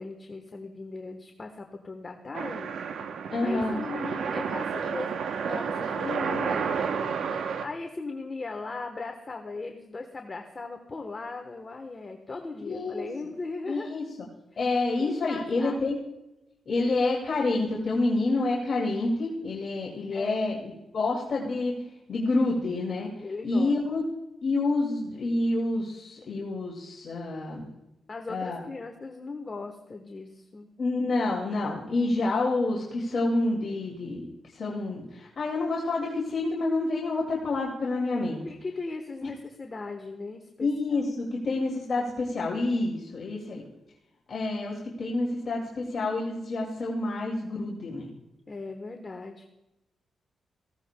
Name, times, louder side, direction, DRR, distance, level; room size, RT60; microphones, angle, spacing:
voice 1, 0.0-2.7 3.4-5.1 5.5-13.9 14.5-14.6 15.0-15.8 20.1-20.4 23.2-23.7 28.1-30.7 38.4-41.0 41.6-41.7 48.5-49.5, left 3 dB, 35° left, 4 dB, 1.1 m, -38 dB
sound 1, 2.3-7.7, right 6 dB, 85° right, 0.8 m, -31 dB
voice 2, 3.3-3.8 12.6-13.1 13.7-14.1 14.6-16.0 16.7-20.5 20.9-21.7 22.1-23.1 23.4-24.0 24.4-27.7 28.3-28.6 30.8-38.4 40.6-43.6 44.3-48.1, left 2 dB, 50° left, -2 dB, 2.2 m, -28 dB
19.0 x 15.5 x 2.2 m, 0.97 s
cardioid pair, 95°, 0 cm